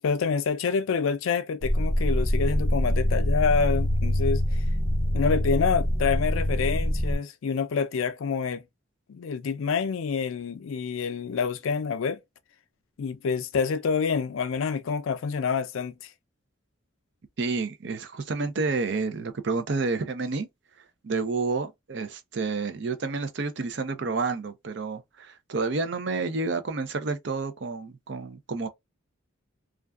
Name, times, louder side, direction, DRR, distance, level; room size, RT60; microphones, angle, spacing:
voice 1, 0.0-4.6 5.1-8.6 9.1-12.2 13.0-16.1, left 5 dB, 80° left, 0.4 m, -27 dB
sound 1, 1.6-7.2, equal, 35° right, 1.2 m, -25 dB
voice 2, 17.4-20.5 21.0-28.7, right 4 dB, 60° right, 0.5 m, -29 dB
2.4 x 2.2 x 2.3 m
head